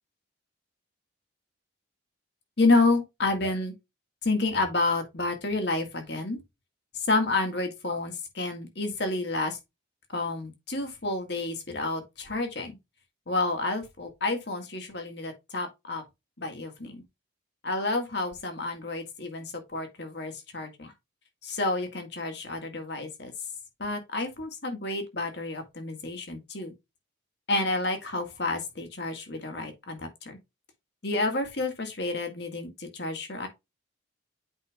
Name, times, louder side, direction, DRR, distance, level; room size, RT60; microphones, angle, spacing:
voice 1, 2.6-3.7 4.2-6.4 6.9-9.6 10.1-12.8 13.3-16.0 16.4-17.0 17.6-20.9 21.4-23.3 23.8-26.7 27.5-30.4 31.0-33.5, left 2 dB, 55° left, 1.9 m, -29 dB
8.1 x 5.4 x 2.4 m
head